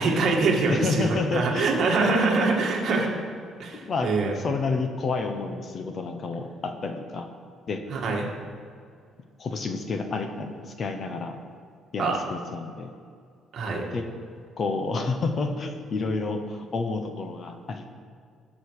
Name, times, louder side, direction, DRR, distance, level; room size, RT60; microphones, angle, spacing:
voice 1, 0.0-3.1 3.6-4.3 7.9-8.3 12.0-12.2 13.5-13.9, right 3 dB, 50° right, 0 dB, 1.9 m, -24 dB
voice 2, 0.7-1.7 3.7-7.3 7.7-7.8 9.4-11.4 11.9-12.9 13.9-14.1 14.6-17.9, left 3 dB, 35° left, 6 dB, 0.9 m, -29 dB
18.5 x 6.4 x 4.9 m, 2.2 s
cardioid pair, 155°, 0 cm